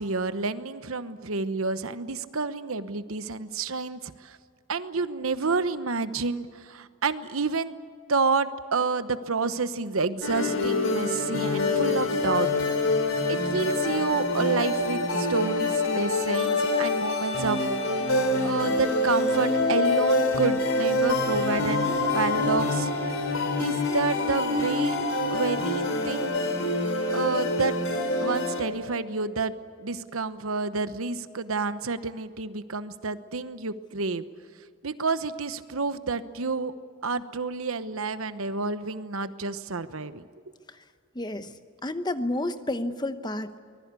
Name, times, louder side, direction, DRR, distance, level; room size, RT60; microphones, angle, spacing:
voice 1, 0.0-4.4 4.7-7.8 8.1-12.5 13.3-17.7 18.4-21.9 22.1-22.9 23.6-25.0 25.3-26.3 27.1-27.7 28.2-29.5 29.8-34.2 34.8-36.7 37.0-40.2, right 4 dB, 75° right, 12 dB, 1.1 m, -29 dB
sound 1, 10.2-28.6, left 2 dB, 75° left, 4.0 m, -26 dB
voice 2, 41.1-41.5 41.8-43.5, left 1 dB, 20° left, 10 dB, 0.9 m, -30 dB
24.0 x 20.5 x 8.3 m, 2.1 s
head